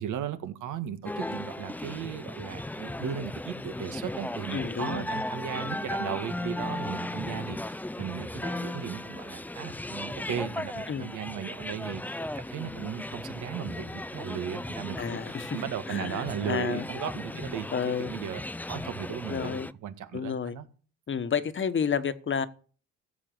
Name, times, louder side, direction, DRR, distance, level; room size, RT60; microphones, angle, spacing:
voice 1, 0.0-18.4 18.7-19.6 19.8-20.7, right 9 dB, 80° right, 1.8 m, -36 dB
sound 1, 1.1-19.7, left 1 dB, 5° left, 0.5 m, -36 dB
voice 2, 4.5-5.1 10.9-11.1 15.0-15.6 15.9-16.8 17.3-17.4 17.7-18.1 19.3-19.7 20.1-20.6 21.1-22.5, left 7 dB, 40° left, 1.3 m, -30 dB
15.5 x 7.7 x 7.8 m
cardioid pair, 90°, 30 cm